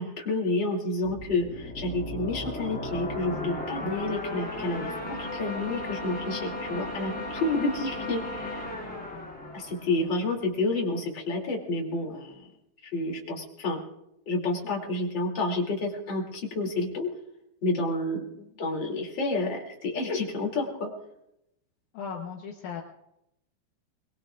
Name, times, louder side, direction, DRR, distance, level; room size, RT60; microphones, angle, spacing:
voice 1, 0.0-4.9 5.2-8.6 9.5-12.5 12.8-13.8 14.3-17.1 17.6-20.9, left 2 dB, 30° left, 0 dB, 3.0 m, -29 dB
sound 1, 1.0-10.6, left 1 dB, ahead, 5.3 m, -36 dB
voice 2, 21.9-22.8, left 6 dB, 70° left, 1 dB, 1.8 m, -36 dB
23.0 x 22.5 x 2.5 m, 0.82 s
omnidirectional pair, 5.0 m